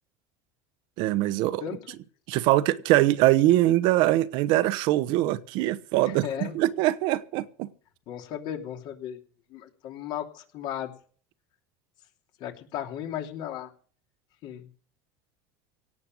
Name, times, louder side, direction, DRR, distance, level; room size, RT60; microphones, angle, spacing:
voice 1, 1.0-1.6 2.3-7.7, right 15 dB, 60° right, 1.0 m, -23 dB
voice 2, 6.1-6.6 8.1-9.2 9.5-10.9 12.4-13.7 14.4-14.7, left 10 dB, 55° left, 3.0 m, -35 dB
17.5 x 7.7 x 7.8 m
supercardioid pair, 125°, 9 cm